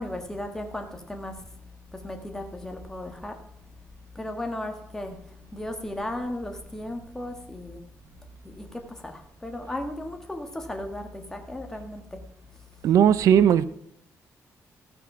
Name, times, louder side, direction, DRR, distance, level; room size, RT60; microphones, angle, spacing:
voice 1, 0.0-1.4 2.0-3.4 4.1-5.2 5.5-7.8 8.4-12.2 13.3-13.4, left 1 dB, 10° left, 1.5 m, -35 dB
voice 2, 12.8-13.6, right 9 dB, 75° right, 0.6 m, -17 dB
15.5 x 6.2 x 5.9 m
cardioid pair, 160°, 6 cm